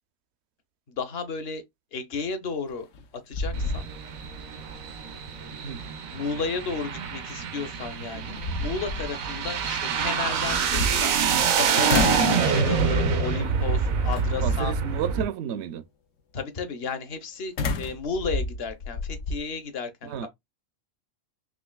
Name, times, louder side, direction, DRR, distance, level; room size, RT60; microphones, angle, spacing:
voice 1, 0.9-1.6 1.9-2.9 3.3-3.9 6.1-14.8 16.3-20.3, left 5 dB, 55° left, 1.0 m, -33 dB
sound 1, 2.7-3.0 3.3-4.3 4.7-4.8 7.5-7.6 8.2-9.1 10.4-11.5 11.9-12.4 12.9-13.3 14.1-14.6 17.6-19.4, left 3 dB, 70° left, 1.1 m, -30 dB
sound 2, 3.5-15.2, right 5 dB, 85° right, 1.2 m, -26 dB
voice 2, 5.5-5.8 14.4-15.8 20.0-20.3, right 9 dB, 65° right, 0.8 m, -31 dB
5.1 x 2.9 x 2.2 m
omnidirectional pair, 1.4 m